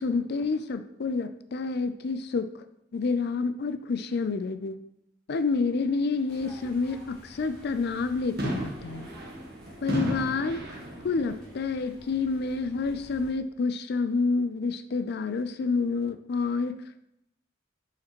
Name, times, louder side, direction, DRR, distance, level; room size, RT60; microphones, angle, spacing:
voice 1, 0.0-2.6 2.9-4.8 5.3-9.1 9.8-10.6 11.0-16.7, left 4 dB, 55° left, 11 dB, 0.4 m, -28 dB
sound 1, 6.3-13.3, equal, 5° left, 2.9 m, -50 dB
sound 2, 8.4-11.4, equal, 55° right, 1.5 m, -34 dB
9.3 x 5.0 x 3.0 m, 0.80 s
head